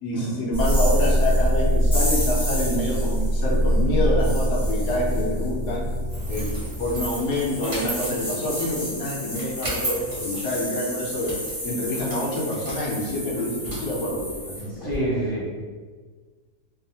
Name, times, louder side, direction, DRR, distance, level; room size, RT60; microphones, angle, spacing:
voice 1, 0.0-5.9 6.3-6.5 6.8-11.3 11.6-14.9, left 1 dB, 80° left, -2 dB, 1.2 m, -27 dB
sound 1, 0.5-14.6, equal, 35° left, 0.9 m, -26 dB
sound 2, 6.1-15.0, right 1 dB, 30° right, 0.9 m, -36 dB
voice 2, 14.8-15.5, right 1 dB, 60° right, -10 dB, 0.6 m, -27 dB
3.0 x 2.1 x 2.6 m, 1.5 s
omnidirectional pair, 1.7 m